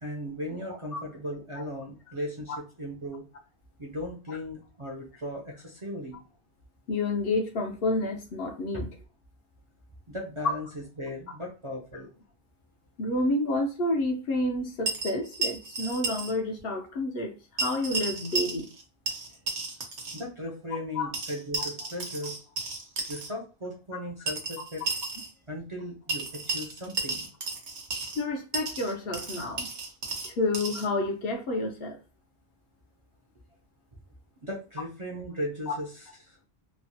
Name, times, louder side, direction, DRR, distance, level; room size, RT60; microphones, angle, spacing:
voice 1, 0.0-3.3 3.8-6.2 8.7-8.8 10.1-10.7 11.0-12.2 19.3-19.4 20.1-22.4 23.1-24.8 25.5-27.3 34.4-35.9 36.2-36.4, equal, 40° right, -3 dB, 0.5 m, -37 dB
voice 2, 6.9-8.9 13.0-18.7 21.0-21.1 28.2-29.7 30.2-32.0 35.7-35.8, left 2 dB, 65° left, 3 dB, 0.8 m, -29 dB
sound 1, 14.9-16.3 16.6-16.7 17.6-18.8 19.1-20.2 21.1-23.3 24.3-25.3 26.1-28.2 28.5-30.9, right 3 dB, 85° right, 1.1 m, -33 dB
3.1 x 2.1 x 2.6 m, 0.33 s
omnidirectional pair, 1.2 m